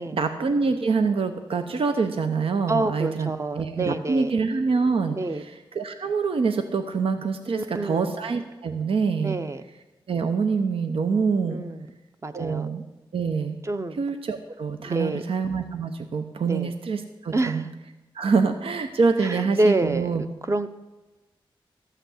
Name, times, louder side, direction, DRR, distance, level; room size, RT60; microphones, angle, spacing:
voice 1, 0.1-3.3 3.6-9.4 10.1-11.6 12.3-12.8 13.1-13.6 14.0-17.7 18.1-20.2, right 5 dB, 85° right, 7 dB, 0.8 m, -25 dB
voice 2, 2.7-4.3 5.1-5.4 7.5-8.1 9.2-9.6 11.5-11.9 12.2-12.7 13.6-14.0 14.8-15.2 16.4-16.7 17.3-17.7 19.2-20.2 20.5-20.7, right 2 dB, 30° right, 9 dB, 0.7 m, -27 dB
13.5 x 5.8 x 8.4 m, 1.1 s
wide cardioid pair, 115°, 9 cm